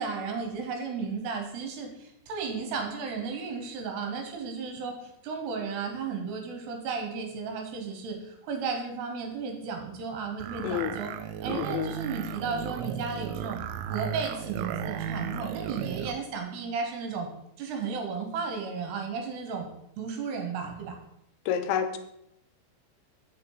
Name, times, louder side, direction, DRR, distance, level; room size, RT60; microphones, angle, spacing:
voice 1, 0.0-11.1 11.4-13.6 13.9-17.3 17.6-19.7 20.0-20.9, right 5 dB, 70° right, 3 dB, 2.8 m, -34 dB
sound 1, 10.4-16.2, right 9 dB, 90° right, 3.0 m, -35 dB
voice 2, 10.6-11.0 11.5-11.9 21.5-22.0, left 9 dB, 85° left, 9 dB, 3.1 m, -29 dB
8.5 x 6.6 x 4.7 m, 0.80 s
omnidirectional pair, 5.5 m